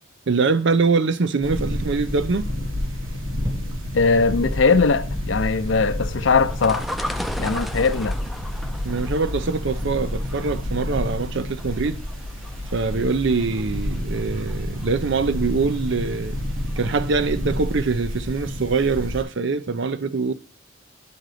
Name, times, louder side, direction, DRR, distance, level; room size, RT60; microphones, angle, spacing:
voice 1, 0.3-2.5 8.8-12.1 12.7-16.4 16.8-20.3, right 4 dB, 65° right, 0.6 m, -23 dB
sound 1, 1.4-19.2, left 1 dB, 85° right, 2.7 m, -29 dB
sound 2, 3.4-6.0, equal, 30° right, 1.2 m, -39 dB
voice 2, 3.9-6.9 7.4-8.2, left 4 dB, 65° left, 0.6 m, -20 dB
sound 3, 6.4-17.2 17.5-17.6, equal, ahead, 0.5 m, -36 dB
10.5 x 3.8 x 4.9 m
head